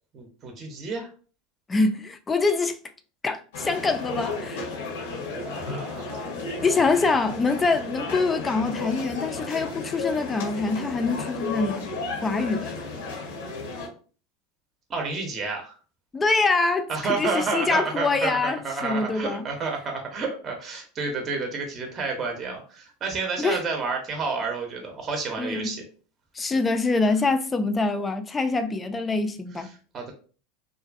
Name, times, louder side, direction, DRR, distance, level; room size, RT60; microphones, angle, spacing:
voice 1, 0.1-1.1 5.3-6.6 14.9-15.7 16.9-25.8 29.6-29.7 29.9-30.1, right 4 dB, 35° right, 0.7 m, -30 dB
voice 2, 1.7-2.8 3.2-4.7 6.6-11.9 12.2-12.8 16.1-19.4 23.4-23.6 25.4-25.8 26.3-29.7, left 3 dB, 20° left, 0.3 m, -25 dB
sound 1, 3.5-13.9, left 3 dB, 85° left, 0.8 m, -33 dB
2.5 x 2.4 x 2.4 m
hypercardioid pair, 105°, 0 cm